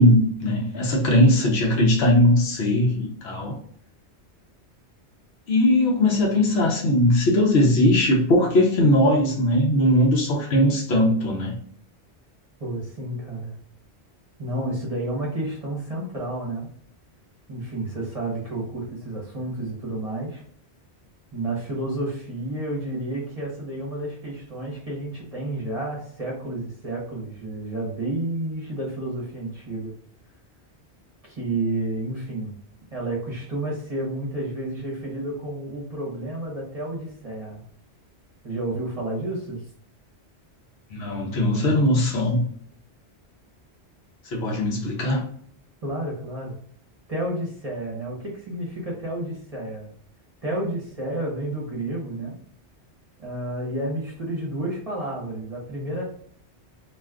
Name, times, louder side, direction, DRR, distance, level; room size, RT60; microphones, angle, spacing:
voice 1, 0.0-3.5 5.5-11.6 40.9-42.4 44.2-45.2, left 1 dB, 75° left, -1 dB, 1.0 m, -19 dB
voice 2, 12.6-13.5 14.4-16.7 17.5-20.4 21.3-29.9 31.2-32.5 32.9-37.6 38.4-39.6 45.8-46.5 47.1-49.9 50.4-52.4 53.2-56.0, right 1 dB, 40° right, -3 dB, 0.8 m, -30 dB
2.5 x 2.3 x 3.5 m, 0.62 s
omnidirectional pair, 1.1 m